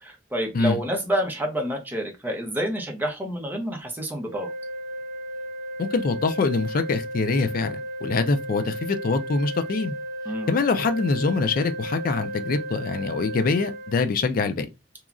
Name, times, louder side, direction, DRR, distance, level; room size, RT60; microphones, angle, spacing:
voice 1, 0.0-4.5 10.3-10.5, equal, 10° right, 0.6 m, -28 dB
sound 1, 4.3-14.0, right 1 dB, 50° right, 0.6 m, -34 dB
voice 2, 5.8-9.9 10.5-14.7, left 4 dB, 50° left, 0.4 m, -24 dB
2.9 x 2.3 x 2.4 m
head